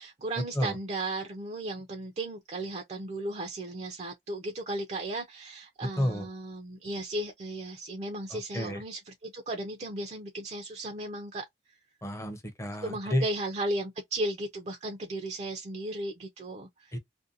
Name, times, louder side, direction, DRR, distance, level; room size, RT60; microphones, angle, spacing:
voice 1, 0.0-11.5 12.8-17.0, right 1 dB, 40° right, 0.4 m, -35 dB
voice 2, 8.3-8.8 12.0-13.2 16.9-17.0, equal, 15° left, 0.6 m, -30 dB
2.5 x 2.2 x 2.5 m
head